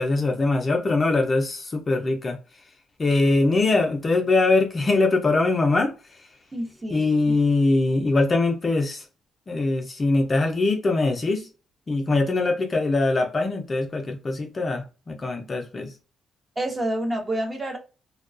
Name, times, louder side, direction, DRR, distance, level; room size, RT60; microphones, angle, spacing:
voice 1, 0.0-2.4 3.0-6.3 6.9-9.1 9.5-11.5 11.9-15.9, left 3 dB, 35° left, 0.5 m, -22 dB
voice 2, 6.5-7.4 16.6-17.8, right 1 dB, 20° right, 0.8 m, -29 dB
2.3 x 2.2 x 2.4 m
cardioid pair, 90°, 0 cm